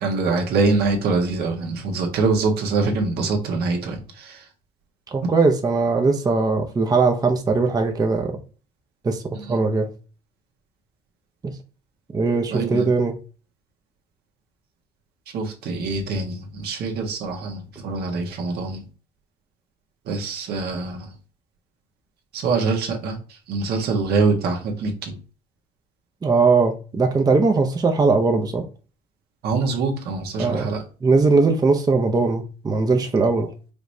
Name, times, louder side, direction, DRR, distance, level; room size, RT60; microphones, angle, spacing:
voice 1, 0.0-4.4 9.3-9.6 12.5-12.9 15.3-18.9 20.1-21.1 22.3-25.2 29.4-30.8, right 3 dB, 70° right, 1.3 m, -24 dB
voice 2, 5.1-8.4 9.0-9.2 9.5-9.9 11.4-11.5 12.1-13.1 26.2-28.6 30.4-30.7 31.0-33.5, right 4 dB, 20° right, 0.6 m, -20 dB
5.0 x 3.2 x 2.6 m
cardioid pair, 110°, 17 cm